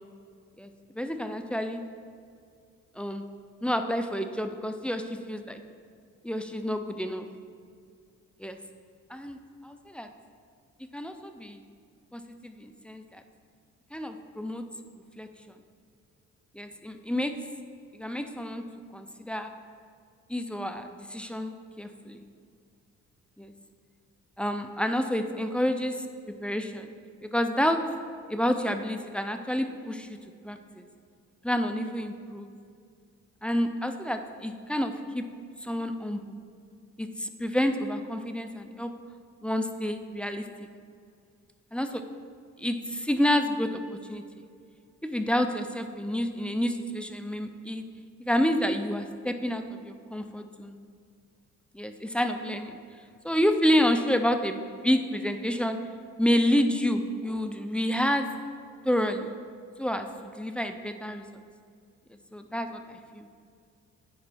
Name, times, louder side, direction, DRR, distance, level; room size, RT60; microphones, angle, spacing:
voice 1, 0.6-1.8 3.0-3.2 3.6-5.6 6.2-7.3 8.4-8.6 9.1-10.1 10.9-11.6 12.1-13.2 13.9-14.6 15.2-15.3 16.5-17.3 17.9-18.6 18.9-19.5 20.3-22.2 23.4-23.5 24.4-26.9 27.2-27.8 28.3-30.2 30.4-30.8 31.4-32.5 33.4-35.2 35.6-36.4 37.0-38.9 39.4-40.4 41.7-42.0 42.6-44.4 45.0-47.8 48.2-50.8 51.7-52.8 53.2-55.8 56.2-58.3 58.8-59.3 59.8-61.3 62.3-63.3, equal, 5° left, 7 dB, 0.4 m, -29 dB
9.6 x 4.5 x 4.2 m, 2.3 s
cardioid pair, 90°, 30 cm